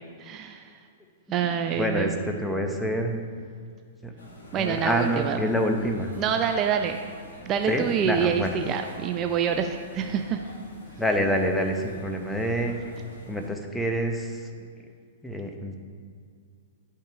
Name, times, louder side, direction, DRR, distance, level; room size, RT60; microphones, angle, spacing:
voice 1, 0.2-0.7 1.3-2.2 4.5-5.4 6.2-7.0 7.4-10.4, right 8 dB, 30° right, 5 dB, 0.5 m, -26 dB
voice 2, 1.4-3.1 4.0-4.1 4.5-6.1 7.7-8.6 11.0-12.9 13.3-14.5 15.2-15.8, equal, 5° left, 3 dB, 0.8 m, -27 dB
sound 1, 4.2-13.5, left 1 dB, 85° left, 1.8 m, -46 dB
10.0 x 5.6 x 3.5 m, 2.1 s
hypercardioid pair, 120°, 0 cm